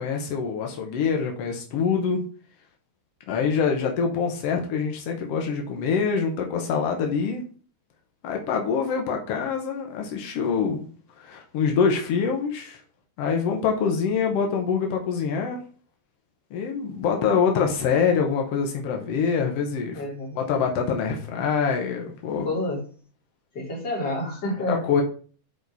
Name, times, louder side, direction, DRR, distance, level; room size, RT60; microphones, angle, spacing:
voice 1, 0.0-2.2 3.3-7.4 8.2-10.9 11.2-12.8 13.2-15.6 16.5-20.0 20.3-22.5 24.7-25.0, left 6 dB, 80° left, 2 dB, 1.3 m, -25 dB
voice 2, 19.9-20.4 22.4-22.8 23.5-24.8, left 1 dB, 30° left, -3 dB, 3.2 m, -29 dB
9.0 x 4.8 x 4.0 m, 0.41 s
omnidirectional pair, 4.3 m